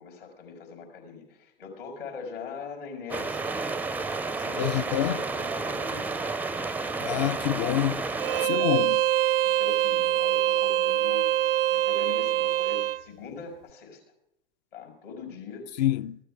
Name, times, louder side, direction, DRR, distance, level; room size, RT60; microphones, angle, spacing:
voice 1, 0.0-3.5 4.3-6.3 8.4-8.9 9.4-11.3 11.7-14.0 14.7-15.7, left 5 dB, 70° left, 4.4 m, -41 dB
sound 1, 3.1-8.5, right 3 dB, 5° right, 0.4 m, -31 dB
voice 2, 4.6-5.2 7.0-8.1 8.5-9.0 15.8-16.2, left 13 dB, 45° left, 0.5 m, -26 dB
Bowed string instrument, 8.2-13.0, right 14 dB, 70° right, 0.5 m, -24 dB
14.5 x 12.0 x 4.6 m
figure-of-eight pair, 85°, 29 cm